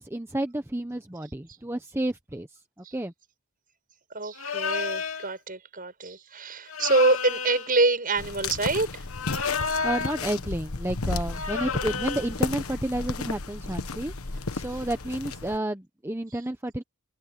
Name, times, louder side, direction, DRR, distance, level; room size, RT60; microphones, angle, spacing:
voice 1, 0.0-2.5 2.9-3.1 9.6-14.1 14.5-16.8, right 1 dB, 10° right, 0.9 m, -31 dB
voice 2, 4.1-9.0, right 3 dB, 40° right, 7.2 m, -26 dB
sound 1, 4.4-5.3 6.7-7.7 9.1-10.3 11.3-12.3, left 5 dB, 75° left, 2.5 m, -31 dB
sound 2, 8.2-15.6, left 3 dB, 90° left, 1.3 m, -33 dB
head